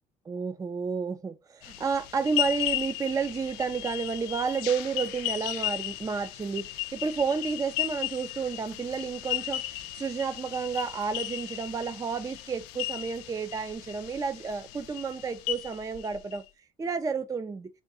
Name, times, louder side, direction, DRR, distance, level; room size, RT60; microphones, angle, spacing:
voice 1, 0.3-9.6 9.9-16.4 16.8-17.7, right 5 dB, 20° right, 0.4 m, -31 dB
sound 1, 1.6-16.4, left 16 dB, 90° left, 0.4 m, -35 dB
3.7 x 2.3 x 3.8 m
supercardioid pair, 75°, 17 cm